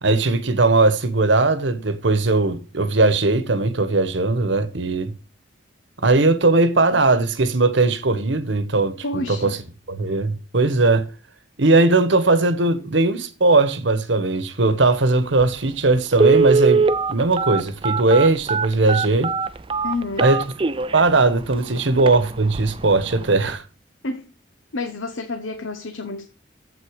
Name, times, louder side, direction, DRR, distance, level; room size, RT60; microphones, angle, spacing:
voice 1, 0.0-5.1 6.0-9.6 9.9-11.1 11.6-19.3 20.2-20.4 20.9-23.6, right 3 dB, 70° right, 1.1 m, -19 dB
voice 2, 9.0-9.6 19.8-20.3 21.7-21.8 24.0-24.2 24.7-26.3, left 3 dB, 85° left, 1.0 m, -29 dB
Telephone, 15.4-15.5 16.1-21.0 21.5-21.6 22.0-22.2 22.5-22.8 23.2-23.3, right 4 dB, 25° right, 0.4 m, -20 dB
8.0 x 7.9 x 5.0 m
head